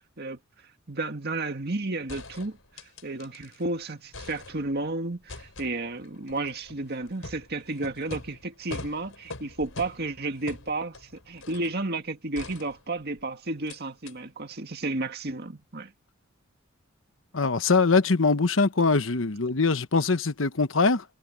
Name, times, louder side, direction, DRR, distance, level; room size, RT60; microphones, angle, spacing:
voice 1, 0.9-2.6 3.0-15.9, right 2 dB, 55° right, 2.0 m, -32 dB
sound 1, 1.6-1.7 2.1-3.6 3.9-4.9 5.3-11.8 12.3-13.2 13.7-13.8 14.1-14.2, left 2 dB, 90° left, 4.0 m, -43 dB
voice 2, 17.3-21.0, left 4 dB, 70° left, 1.1 m, -22 dB
head